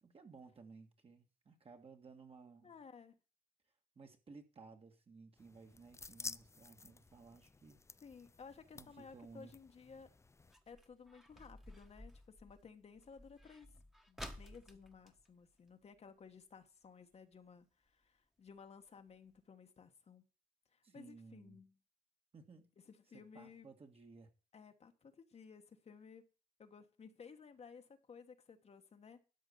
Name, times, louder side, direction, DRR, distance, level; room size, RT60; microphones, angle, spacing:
voice 1, 0.0-2.8 4.0-7.8 8.7-9.5 20.8-21.6 22.3-22.7 23.1-24.3, right 4 dB, 40° right, 1.9 m, -58 dB
voice 2, 2.6-3.2 8.0-10.1 10.7-13.7 14.1-20.3 20.7-21.7 22.9-23.7 24.5-26.2 26.6-29.2, left 5 dB, 45° left, 1.3 m, -57 dB
sound 1, 5.4-10.6, left 4 dB, 20° left, 0.4 m, -53 dB
sound 2, 7.7-16.3 16.6-16.7 17.0-17.3 17.9-18.0 18.5-18.6 18.9-19.0 19.3-19.4, equal, 5° right, 1.4 m, -56 dB
12.5 x 5.1 x 6.9 m
cardioid pair, 90°, 15 cm